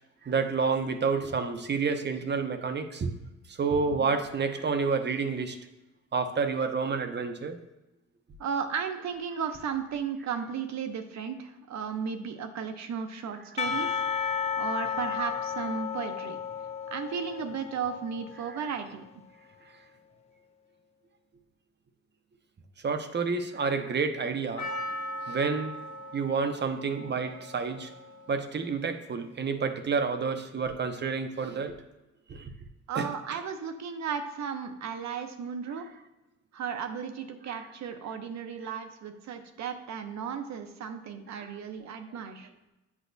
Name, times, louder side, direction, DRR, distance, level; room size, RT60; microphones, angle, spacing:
voice 1, 0.2-3.1 3.5-5.6 6.1-7.6 18.4-18.6 22.8-24.7 25.3-25.7 26.1-27.9 28.3-31.8 32.3-32.5 32.9-33.1 41.3-41.5, right 5 dB, 35° right, 8 dB, 0.7 m, -29 dB
voice 2, 8.4-14.3 14.6-16.4 16.9-19.0 32.9-35.9 36.5-42.5, right 6 dB, 65° right, 7 dB, 0.8 m, -35 dB
Percussion / Church bell, 13.6-18.6, left 7 dB, 20° left, 0.4 m, -33 dB
Percussion, 24.6-28.9 29.2-29.3, equal, 70° left, 1.0 m, -40 dB
8.2 x 5.4 x 2.7 m, 1.0 s
cardioid pair, 90°, 30 cm